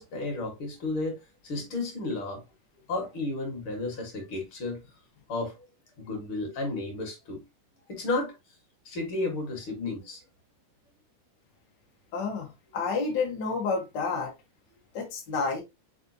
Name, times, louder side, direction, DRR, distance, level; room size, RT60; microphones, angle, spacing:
voice 1, 0.0-2.4 2.9-4.8 5.3-5.7 6.0-7.4 7.9-8.3 8.9-10.2, left 2 dB, 50° left, 1.9 m, -33 dB
voice 2, 12.1-14.3 14.9-15.6, left 4 dB, 65° left, 1.0 m, -30 dB
4.9 x 4.1 x 2.6 m
omnidirectional pair, 3.6 m